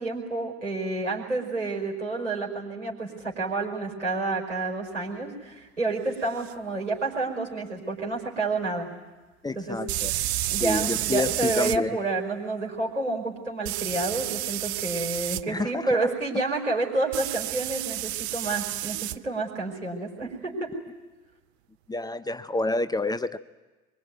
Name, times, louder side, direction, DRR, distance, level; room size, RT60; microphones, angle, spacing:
voice 1, 0.0-8.9 9.6-20.7, right 3 dB, 85° right, -2 dB, 5.1 m, -29 dB
sound 1, 6.4-6.5 9.9-11.8 13.6-15.4 17.1-19.2, right 16 dB, 60° right, 0.8 m, -30 dB
voice 2, 9.4-10.1 10.6-12.0 15.5-16.1 21.9-23.4, left 2 dB, 10° left, 13 dB, 0.8 m, -29 dB
25.0 x 23.5 x 9.5 m, 1.2 s
figure-of-eight pair, 65°, 36 cm